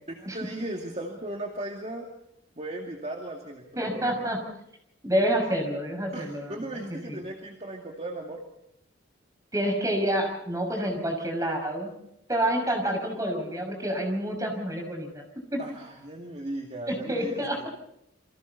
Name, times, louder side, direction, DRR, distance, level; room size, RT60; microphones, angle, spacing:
voice 1, 0.1-2.1 2.6-4.2 6.1-8.4 15.6-17.7, right 1 dB, 35° right, 1 dB, 2.3 m, -37 dB
voice 2, 3.8-4.4 5.0-6.6 7.1-7.2 9.5-11.9 12.3-15.2 15.5-15.6 16.9-17.7, right 1 dB, 20° right, 2 dB, 6.2 m, -28 dB
29.0 x 24.5 x 4.1 m, 0.78 s
head